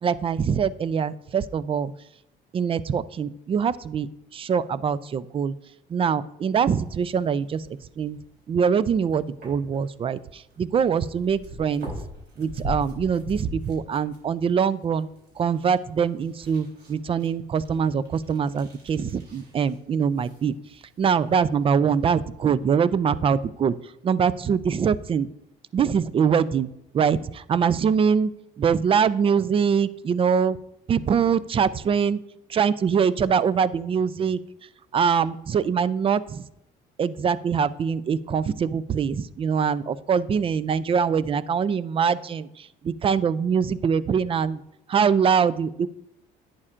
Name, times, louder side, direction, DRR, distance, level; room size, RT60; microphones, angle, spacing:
voice 1, 0.0-1.9 2.5-5.5 5.9-7.7 8.0-8.2 8.5-11.9 12.4-15.1 15.4-20.5 21.0-23.7 24.0-25.3 25.7-28.3 28.6-30.6 30.9-32.2 32.5-34.4 34.9-36.5 37.0-44.6 44.9-45.9, right 7 dB, 35° right, 17 dB, 0.4 m, -23 dB
sound 1, 6.7-22.0, equal, 75° right, 3.7 m, -43 dB
11.0 x 8.8 x 2.5 m, 0.80 s
cardioid pair, 110°, 17 cm